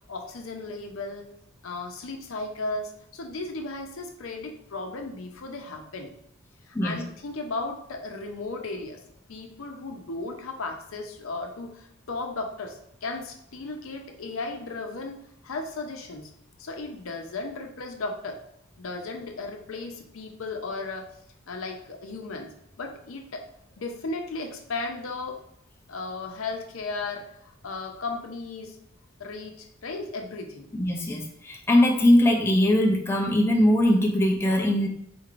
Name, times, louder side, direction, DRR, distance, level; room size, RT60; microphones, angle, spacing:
voice 1, 0.1-1.2 1.6-6.1 6.7-9.0 9.3-15.2 15.4-16.3 16.6-18.4 18.8-21.1 21.5-23.4 23.8-25.4 25.9-28.8 29.2-30.7, left 3 dB, 80° left, 3 dB, 0.6 m, -35 dB
voice 2, 30.7-34.9, left 1 dB, 10° left, 0 dB, 0.4 m, -21 dB
4.2 x 3.1 x 2.5 m, 0.74 s
head